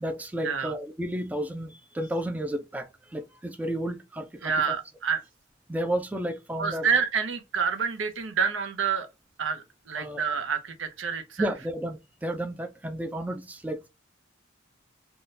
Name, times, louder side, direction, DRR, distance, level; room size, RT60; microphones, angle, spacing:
voice 1, 0.0-4.5 5.7-6.9 10.0-10.2 11.4-13.9, right 1 dB, 10° right, 0.3 m, -32 dB
voice 2, 4.4-5.2 6.6-9.1 9.4-11.5, right 6 dB, 80° right, 0.7 m, -28 dB
3.6 x 2.2 x 2.5 m
head